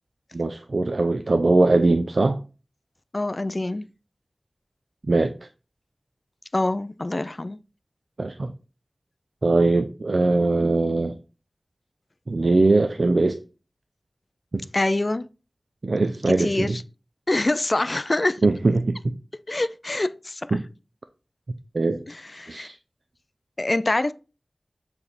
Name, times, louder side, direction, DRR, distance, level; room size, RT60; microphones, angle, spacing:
voice 1, 0.3-2.4 5.1-5.3 8.2-8.5 9.4-11.2 12.3-13.4 14.5-14.6 15.8-16.8 18.4-19.1 20.5-20.6 21.7-22.0 22.5-22.8, right 2 dB, 70° right, 0.4 m, -21 dB
voice 2, 3.1-3.9 6.5-7.6 14.7-15.3 16.3-16.8 17.3-18.5 19.5-20.5 22.1-22.7 23.6-24.1, left 2 dB, 45° left, 0.4 m, -25 dB
7.1 x 3.3 x 4.2 m
wide cardioid pair, 50°, 0 cm